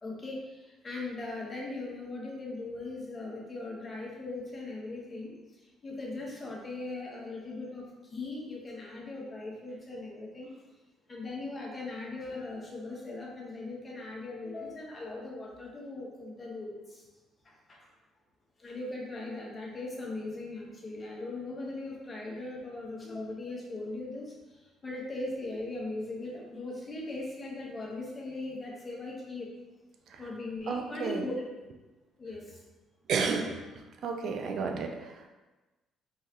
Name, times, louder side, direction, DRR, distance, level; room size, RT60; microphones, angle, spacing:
voice 1, 0.0-10.6 11.1-17.1 17.4-17.9 18.6-29.5 30.2-31.5 32.2-32.6, left 2 dB, 30° left, -3 dB, 1.1 m, -39 dB
voice 2, 30.7-31.3 33.1-33.7 34.0-35.3, right 5 dB, 65° right, 3 dB, 0.4 m, -32 dB
3.8 x 3.1 x 2.9 m, 1.2 s
supercardioid pair, 80°, 0 cm